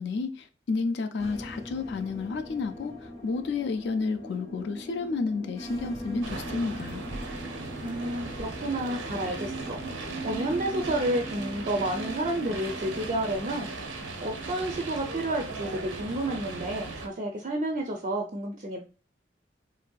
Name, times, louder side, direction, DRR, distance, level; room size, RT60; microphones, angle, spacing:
voice 1, 0.0-7.0, left 4 dB, 65° left, 0.4 m, -31 dB
sound 1, 1.2-15.1, right 1 dB, 20° left, 0.6 m, -41 dB
sound 2, 6.2-17.1, right 3 dB, 90° right, 0.6 m, -38 dB
voice 2, 7.8-10.0 10.2-13.7 14.2-18.8, right 1 dB, 40° right, 0.4 m, -30 dB
3.2 x 2.6 x 2.2 m
head